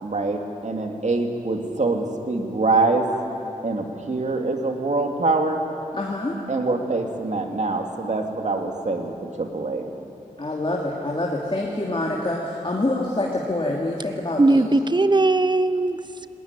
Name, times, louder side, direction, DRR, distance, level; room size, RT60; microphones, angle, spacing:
voice 1, 0.0-3.1 3.6-5.6 6.5-9.8, right 3 dB, 55° right, 3 dB, 2.8 m, -24 dB
voice 2, 5.9-6.4 10.4-14.6, left 2 dB, 35° left, -2 dB, 3.0 m, -26 dB
voice 3, 14.4-16.3, right 2 dB, 30° right, 12 dB, 1.0 m, -19 dB
19.0 x 18.5 x 10.0 m, 2.7 s
cardioid pair, 40°, 14 cm